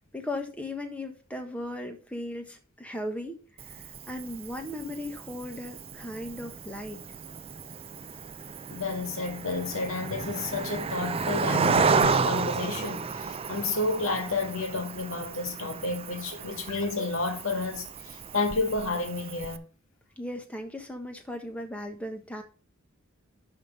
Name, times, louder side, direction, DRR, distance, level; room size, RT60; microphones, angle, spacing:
voice 1, 0.1-7.0 20.2-22.4, left 1 dB, 5° left, 1.3 m, -37 dB
Cricket, 3.6-19.6, right 5 dB, 30° right, 0.4 m, -32 dB
voice 2, 8.7-19.7, left 3 dB, 75° left, 2.1 m, -31 dB
11.5 x 3.8 x 5.3 m
head